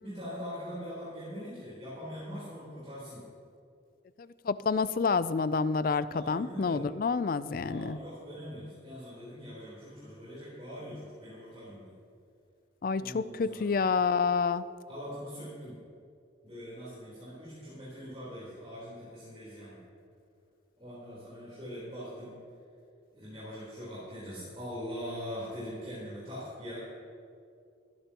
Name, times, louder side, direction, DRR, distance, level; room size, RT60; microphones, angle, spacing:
voice 1, 0.0-3.2 6.1-6.9 7.6-12.0 13.0-13.8 14.9-15.8 16.4-19.8 20.8-22.4 23.1-26.8, equal, 30° right, -9 dB, 3.8 m, -42 dB
voice 2, 4.4-8.0 12.8-14.6, left 5 dB, 50° left, 15 dB, 0.4 m, -28 dB
23.5 x 10.5 x 3.0 m, 2.4 s
head